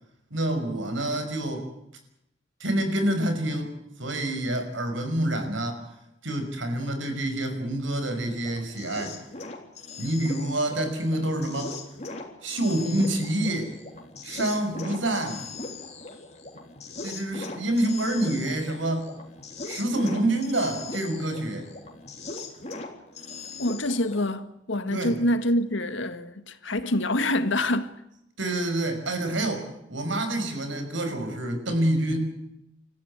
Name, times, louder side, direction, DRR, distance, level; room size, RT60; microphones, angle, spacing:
voice 1, 0.3-1.7 2.6-3.7 4.0-5.8 6.2-9.2 10.0-11.7 12.4-13.7 14.2-15.5 17.0-19.1 19.6-21.7 24.9-25.1 28.4-32.4, right 1 dB, 85° right, 5.7 m, -27 dB
sound 1, 8.1-24.3, left 3 dB, 35° left, 3.5 m, -40 dB
voice 2, 23.6-27.9, left 1 dB, 85° left, 1.8 m, -26 dB
27.5 x 14.5 x 9.7 m
head